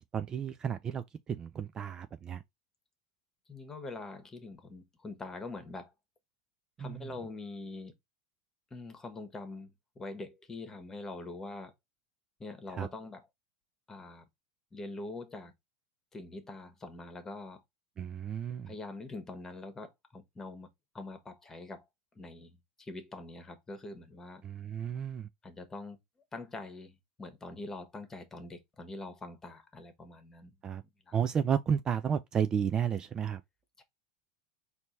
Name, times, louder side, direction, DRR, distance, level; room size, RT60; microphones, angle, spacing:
voice 1, 0.1-2.4 6.8-7.1 12.8-12.9 18.0-18.7 24.4-25.3 30.6-30.8 31.1-33.4, right 8 dB, 30° right, 0.4 m, -32 dB
voice 2, 3.5-5.9 6.8-7.9 8.7-11.7 12.4-13.3 13.9-14.2 14.7-15.5 16.1-17.6 18.6-20.7 20.9-21.9 22.1-24.4 25.4-26.0 26.3-30.5 31.1-31.2 33.8-33.9, left 2 dB, 20° left, 1.4 m, -44 dB
4.4 x 2.8 x 4.0 m
hypercardioid pair, 95°, 2 cm